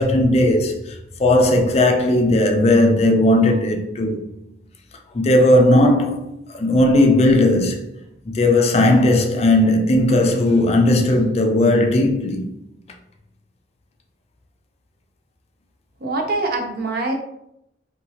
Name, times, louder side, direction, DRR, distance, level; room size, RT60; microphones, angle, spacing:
voice 1, 0.0-4.2 5.1-6.2 6.5-7.8 8.3-12.5, left 1 dB, 35° left, 0.4 m, -16 dB
voice 2, 16.0-17.1, right 2 dB, 55° right, 0.5 m, -24 dB
2.8 x 2.7 x 2.7 m
head